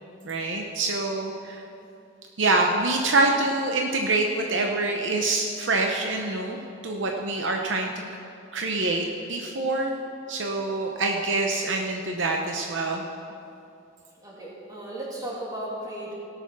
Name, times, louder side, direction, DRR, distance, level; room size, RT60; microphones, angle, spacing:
voice 1, 0.2-1.6 2.4-7.9 8.5-9.9 10.3-13.1, right 2 dB, 65° right, 2 dB, 0.8 m, -25 dB
voice 2, 14.2-16.1, right 1 dB, 20° right, -5 dB, 2.7 m, -36 dB
17.5 x 6.9 x 6.0 m, 2.7 s
head